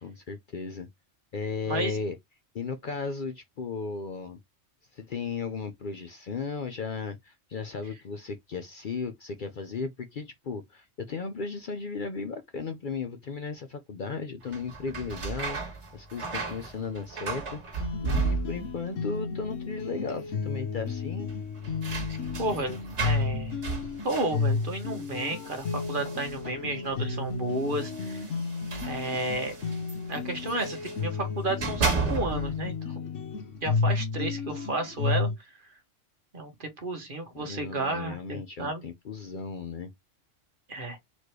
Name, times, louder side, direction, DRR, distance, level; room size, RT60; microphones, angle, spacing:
voice 1, 0.0-0.9 1.3-2.1 2.5-4.4 4.9-21.3 37.3-39.9, left 4 dB, 50° left, 0.7 m, -35 dB
voice 2, 1.7-2.0 22.4-23.6 24.0-28.2 28.9-29.6 30.1-33.1 33.6-35.5 36.3-38.8 40.7-41.0, right 2 dB, 45° right, 1.3 m, -32 dB
sound 1, 14.4-18.8 19.1-19.8 20.1-20.2 21.3-26.7 27.5-31.0 31.4-32.6, right 4 dB, 70° right, 1.6 m, -34 dB
sound 2, 17.8-35.4, left 4 dB, 80° left, 1.2 m, -32 dB
4.2 x 3.1 x 3.1 m
omnidirectional pair, 1.3 m